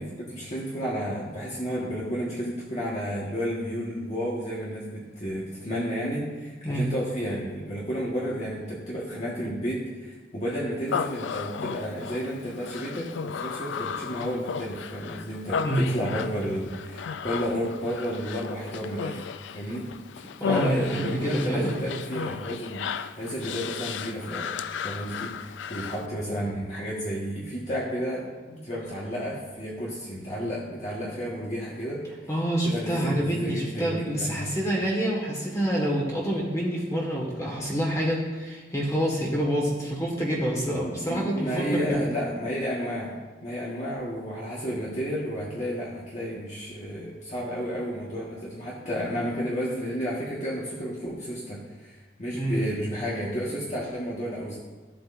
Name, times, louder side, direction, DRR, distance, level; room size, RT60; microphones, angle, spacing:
voice 1, 0.0-19.3 19.5-19.8 20.4-24.5 24.8-32.0 32.6-34.5 40.8-54.6, equal, 40° left, -6 dB, 1.5 m, -32 dB
Human voice, 10.9-26.1, left 6 dB, 85° left, 0.4 m, -35 dB
voice 2, 20.4-21.8 32.3-42.0 52.3-52.6, right 1 dB, 15° left, -3 dB, 1.6 m, -27 dB
14.0 x 7.6 x 2.6 m, 1.3 s
head